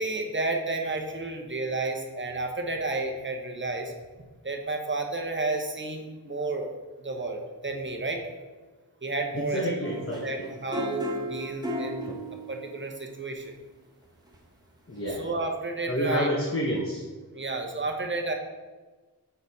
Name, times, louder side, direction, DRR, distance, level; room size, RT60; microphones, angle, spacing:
voice 1, 0.0-3.9 4.4-6.7 7.0-8.2 9.0-9.6 10.2-11.9 12.5-13.4 15.2-16.3 17.3-18.3, right 3 dB, 30° right, 2 dB, 1.0 m, -31 dB
voice 2, 9.3-10.3 12.1-12.2 14.9-15.2 15.9-17.0, equal, 35° left, -2 dB, 1.0 m, -29 dB
sound 1, 9.8-12.7 14.3-14.4, equal, 10° right, 1.4 m, -34 dB
6.7 x 4.0 x 4.1 m, 1.3 s
wide cardioid pair, 50°, 39 cm